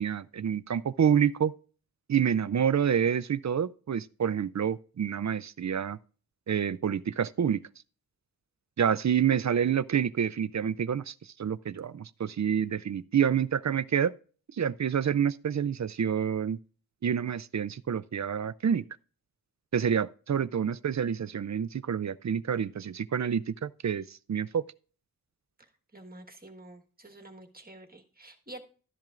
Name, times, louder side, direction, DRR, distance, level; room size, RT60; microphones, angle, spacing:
voice 1, 0.0-1.5 2.1-6.0 6.5-7.6 8.8-11.1 11.4-14.1 14.6-16.6 17.0-18.8 19.7-24.6, right 8 dB, 50° right, 0.4 m, -28 dB
voice 2, 25.6-28.6, right 1 dB, 25° right, 1.4 m, -49 dB
13.0 x 10.5 x 2.5 m
wide cardioid pair, 70°, 36 cm